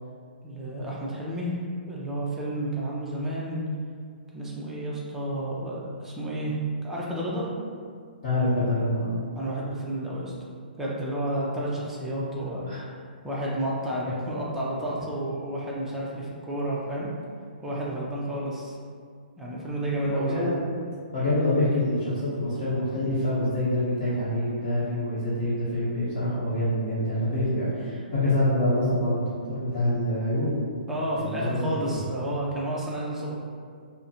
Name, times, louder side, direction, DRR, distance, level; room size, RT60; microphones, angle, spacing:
voice 1, 0.4-1.6 1.9-3.6 4.3-7.5 9.3-10.3 10.8-12.7 13.2-17.1 17.6-18.8 19.4-20.5 30.9-33.3, right 1 dB, 5° right, -6 dB, 0.4 m, -31 dB
voice 2, 8.2-9.2 12.4-12.8 20.1-20.6 21.1-30.6 31.2-32.0, left 1 dB, 45° left, -14 dB, 1.0 m, -26 dB
2.4 x 2.1 x 2.7 m, 2.1 s
figure-of-eight pair, 130°, 5 cm